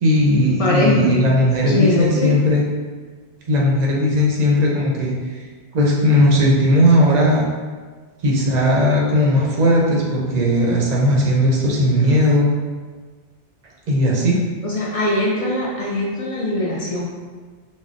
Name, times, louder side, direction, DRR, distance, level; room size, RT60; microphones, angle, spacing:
voice 1, 0.0-2.6 3.5-5.4 5.7-7.5 8.2-12.5 13.9-14.4, left 1 dB, 50° right, -3 dB, 0.5 m, -17 dB
voice 2, 0.6-1.1 1.7-2.3 14.6-17.1, left 1 dB, 65° left, -5 dB, 0.3 m, -21 dB
3.7 x 2.0 x 2.5 m, 1.4 s
omnidirectional pair, 1.2 m